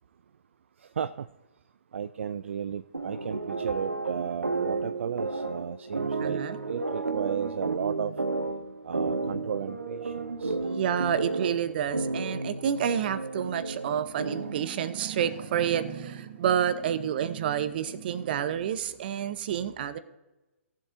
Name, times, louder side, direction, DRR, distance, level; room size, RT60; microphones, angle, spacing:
voice 1, 0.8-1.3 1.9-8.1 8.8-10.6, right 7 dB, 60° right, 13 dB, 0.4 m, -34 dB
sound 1, 2.9-14.7, right 3 dB, 80° right, 1.0 m, -32 dB
voice 2, 6.2-6.6 10.6-20.0, right 9 dB, 45° right, 14 dB, 0.8 m, -29 dB
17.5 x 7.6 x 2.6 m, 1.1 s
figure-of-eight pair, 125°, 7 cm